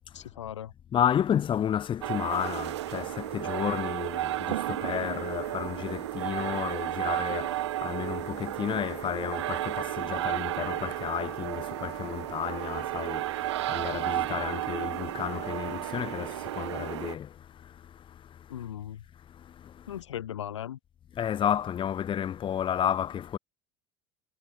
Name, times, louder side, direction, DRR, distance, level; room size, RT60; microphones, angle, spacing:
voice 1, 0.1-0.7 18.5-19.0 19.9-20.8, left 11 dB, 70° left, 1.9 m, -38 dB
voice 2, 0.9-17.3 21.1-23.4, left 9 dB, 35° left, 1.9 m, -31 dB
sound 1, 2.0-17.1, right 15 dB, 65° right, 1.3 m, -33 dB
figure-of-eight pair, 70°, 15 cm